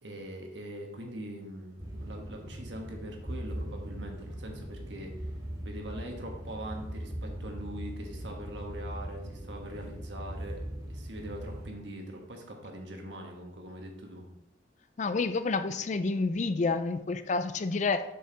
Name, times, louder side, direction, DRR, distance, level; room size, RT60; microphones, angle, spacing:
voice 1, 0.0-5.3 5.6-10.6 10.9-14.3, right 1 dB, 70° right, 2 dB, 1.4 m, -42 dB
sound 1, 1.8-11.7, right 1 dB, 20° right, 1.9 m, -40 dB
voice 2, 15.0-18.0, left 3 dB, 40° left, 11 dB, 0.4 m, -29 dB
6.6 x 6.4 x 3.9 m, 0.89 s
head